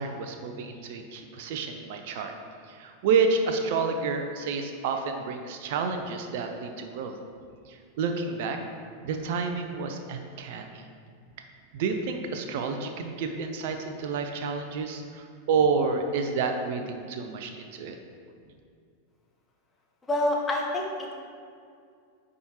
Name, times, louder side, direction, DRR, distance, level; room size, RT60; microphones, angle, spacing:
voice 1, 0.0-2.3 2.6-7.2 7.7-8.6 9.0-10.9 11.7-18.0, right 5 dB, 50° right, 5 dB, 0.4 m, -29 dB
voice 2, 20.1-21.2, left 1 dB, 15° left, -1 dB, 0.9 m, -27 dB
9.4 x 3.6 x 2.9 m, 2.3 s
figure-of-eight pair, 90°, 0 cm